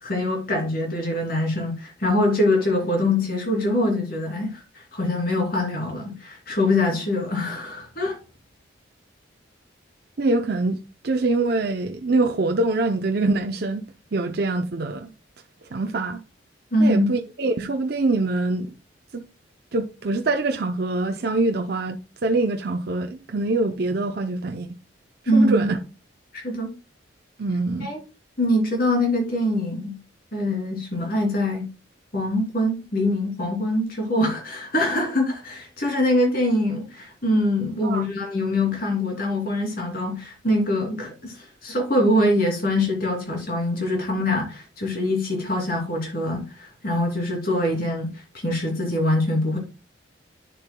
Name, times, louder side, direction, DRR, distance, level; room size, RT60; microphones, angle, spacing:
voice 1, 0.0-4.6 4.9-8.2 16.7-17.1 25.3-25.7 26.3-26.7 27.8-28.0 28.4-30.0 30.3-31.7 32.1-41.3 41.6-48.1 48.4-49.6, left 1 dB, 50° left, 2.8 m, -23 dB
voice 2, 10.2-10.8 11.0-13.8 14.1-15.1 15.7-16.2 16.8-18.7 19.1-19.2 19.7-22.0 22.2-24.7 25.3-25.8 27.4-27.9 37.8-38.0, right 2 dB, 55° right, 0.6 m, -24 dB
9.9 x 6.8 x 2.2 m
head